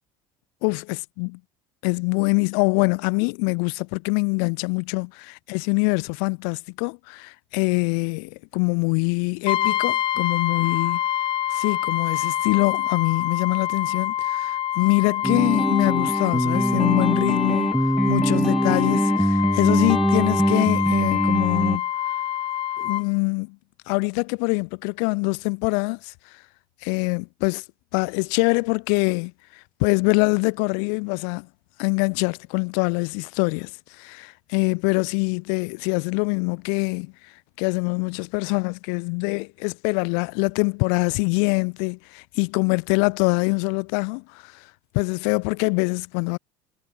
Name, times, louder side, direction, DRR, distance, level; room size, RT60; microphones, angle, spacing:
voice 1, 1.8-11.0 11.5-17.7 18.0-21.9 22.8-23.6 23.9-26.1 26.8-27.6 27.9-31.5 31.8-37.3 37.6-44.7 44.9-46.4, left 40 dB or more, 85° left, 4.8 m, -24 dB
Brass instrument, 9.5-23.1, left 12 dB, 45° left, 5.7 m, -26 dB
sound 1, 15.2-21.8, equal, ahead, 4.7 m, -22 dB
cardioid pair, 130°, 12 cm